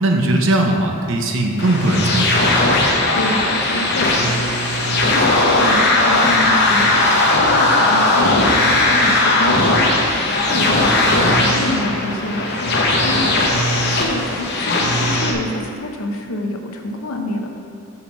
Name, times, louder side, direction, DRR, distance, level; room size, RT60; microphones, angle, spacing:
voice 1, 0.0-2.4, right 1 dB, 65° right, 2 dB, 0.8 m, -18 dB
sound 1, 1.6-15.3, left 2 dB, 50° left, 0.8 m, -17 dB
voice 2, 3.1-7.1 7.4-9.9 10.5-13.6 14.0-17.5, left 1 dB, 90° left, 3 dB, 0.8 m, -27 dB
5.6 x 5.1 x 6.0 m, 2.5 s
head